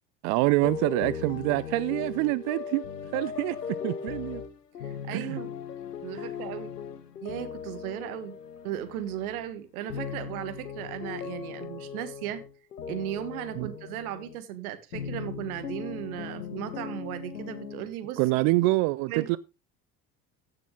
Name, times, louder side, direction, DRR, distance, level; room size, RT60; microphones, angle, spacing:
voice 1, 0.2-2.8 3.1-4.4 5.1-5.4 6.1-6.3 13.6-13.7 18.2-19.4, right 21 dB, 40° right, 0.5 m, -26 dB
sound 1, 0.6-9.5 9.8-14.4 14.9-17.9, left 7 dB, 80° left, 1.1 m, -38 dB
voice 2, 4.8-5.5 6.0-6.7 7.2-8.4 8.6-12.4 12.9-18.2 19.1-19.4, right 11 dB, 60° right, 1.6 m, -36 dB
15.5 x 6.7 x 3.8 m
figure-of-eight pair, 65°, 48 cm